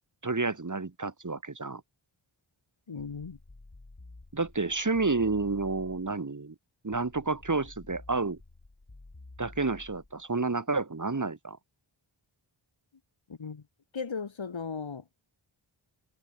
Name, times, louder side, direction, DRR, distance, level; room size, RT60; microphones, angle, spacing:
voice 1, 0.2-1.8 4.3-6.6 6.8-8.4 9.4-11.6, right 3 dB, 35° right, 1.7 m, -30 dB
voice 2, 2.9-3.4 13.3-13.6 13.9-15.0, left 5 dB, 65° left, 1.9 m, -36 dB
sound 1, 3.0-6.2 6.9-10.2, left 2 dB, 40° left, 6.9 m, -51 dB
cardioid pair, 40°, 50 cm